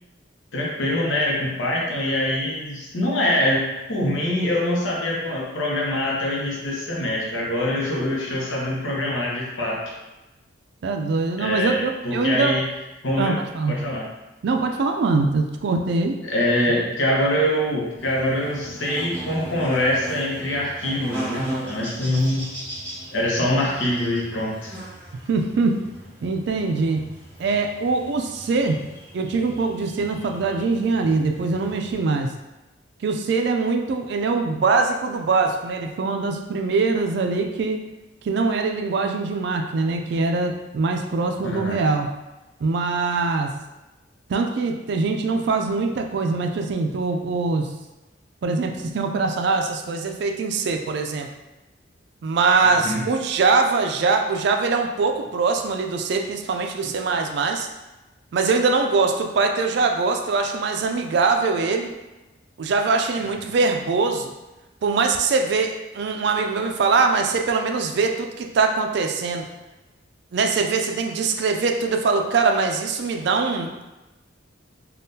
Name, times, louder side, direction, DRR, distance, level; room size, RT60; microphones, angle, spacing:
voice 1, 0.5-9.8 11.4-12.7 13.0-13.3 13.7-14.0 16.2-22.5 23.1-24.7 41.4-41.8 52.8-53.0 63.4-63.5, left 1 dB, 80° left, -4 dB, 0.8 m, -24 dB
voice 2, 10.8-12.6 13.2-13.8 14.4-16.2 25.3-25.8 26.2-27.0 27.4-28.8 29.1-32.3 33.0-37.8 38.2-42.1 42.6-43.5 44.3-47.7 48.4-51.3 52.2-57.7 58.3-61.9 62.6-64.3 64.8-69.5 70.3-73.8, right 4 dB, 60° right, 4 dB, 0.3 m, -22 dB
Buzz, 18.0-31.9, right 1 dB, 10° left, 1.3 m, -37 dB
3.6 x 2.3 x 2.7 m, 1.0 s
head